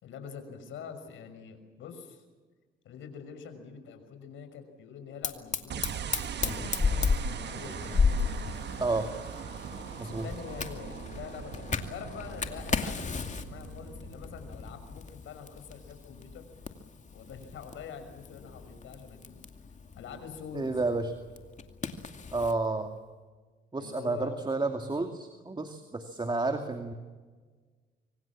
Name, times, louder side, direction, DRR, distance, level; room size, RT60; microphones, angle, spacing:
voice 1, 0.0-2.3 2.8-7.1 7.5-8.4 9.7-16.4 17.1-19.4 20.0-20.7 23.8-24.3, left 6 dB, 80° left, 7 dB, 6.0 m, -45 dB
Fire, 5.2-22.6, left 5 dB, 40° left, 2.4 m, -35 dB
sound 1, 5.7-15.1, right 9 dB, 60° right, 1.3 m, -41 dB
voice 2, 20.5-21.1 22.3-22.9 23.7-26.9, right 3 dB, 20° right, 5 dB, 2.4 m, -31 dB
25.5 x 25.0 x 7.4 m, 1.4 s
cardioid pair, 90°, 20 cm